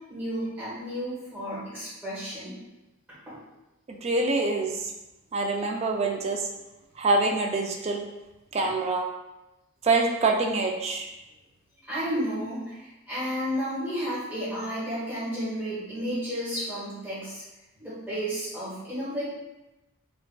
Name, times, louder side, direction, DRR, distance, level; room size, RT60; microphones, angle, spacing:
voice 1, 0.1-2.5 3.1-3.4 8.6-8.7 11.8-17.4 17.8-19.2, equal, ahead, -14 dB, 1.3 m, -32 dB
voice 2, 4.0-4.7 5.3-6.4 7.0-8.0 8.5-9.0 9.8-11.1, right 3 dB, 30° right, 2 dB, 0.3 m, -25 dB
3.5 x 2.4 x 2.2 m, 0.99 s
head